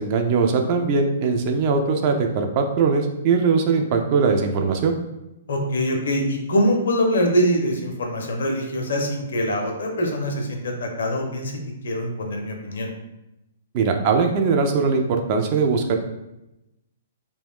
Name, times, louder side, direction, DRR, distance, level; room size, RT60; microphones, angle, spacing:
voice 1, 0.0-5.0 13.7-16.0, right 5 dB, 35° right, 4 dB, 0.3 m, -20 dB
voice 2, 5.5-11.6 11.8-12.9, equal, 60° left, 3 dB, 0.5 m, -23 dB
2.3 x 2.1 x 3.4 m, 0.91 s
figure-of-eight pair, 115°, 0 cm